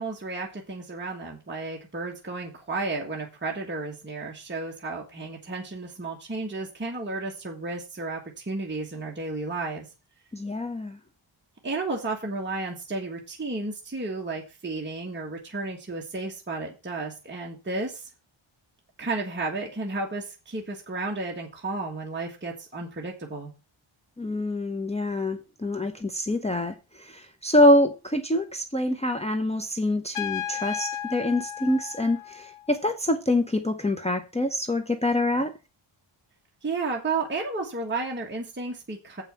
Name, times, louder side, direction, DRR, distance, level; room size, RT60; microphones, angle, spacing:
voice 1, 0.0-9.9 11.6-18.1 19.0-23.5 36.6-39.2, right 3 dB, 20° right, 1.6 m, -32 dB
voice 2, 10.3-11.0 24.2-35.5, left 1 dB, 15° left, 0.7 m, -25 dB
Trumpet, 30.1-32.8, left 10 dB, 75° left, 0.9 m, -34 dB
8.0 x 5.6 x 7.0 m
wide cardioid pair, 165°, 49 cm